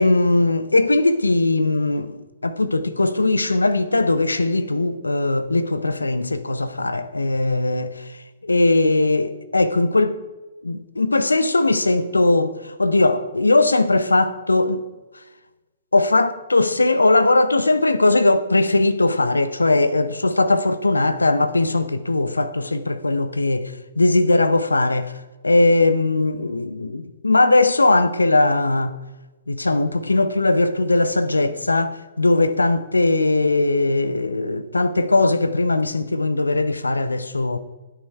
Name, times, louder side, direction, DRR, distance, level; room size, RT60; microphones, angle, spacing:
voice 1, 0.0-2.2 2.4-7.9 8.4-10.2 10.6-14.8 15.9-25.1 25.4-29.0 29.5-37.6, left 2 dB, 85° left, 0.6 m, -19 dB
15.0 x 8.5 x 3.3 m
figure-of-eight pair, 125°, 0 cm